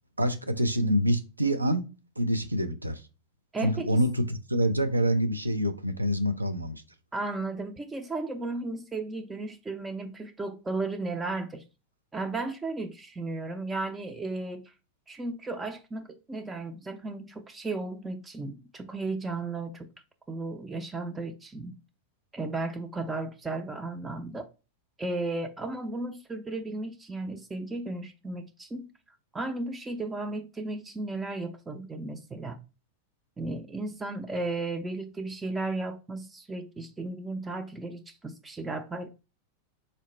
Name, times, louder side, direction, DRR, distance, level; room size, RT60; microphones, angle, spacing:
voice 1, 0.2-1.8 2.2-3.0 3.6-6.8, equal, 85° right, 0.4 m, -26 dB
voice 2, 3.5-4.0 7.1-11.6 12.1-14.7 15.1-19.9 20.3-21.8 22.3-24.5 25.0-28.9 29.3-32.6 33.4-39.1, right 2 dB, 15° right, 0.4 m, -34 dB
4.0 x 2.1 x 2.9 m
figure-of-eight pair, 90°, 0 cm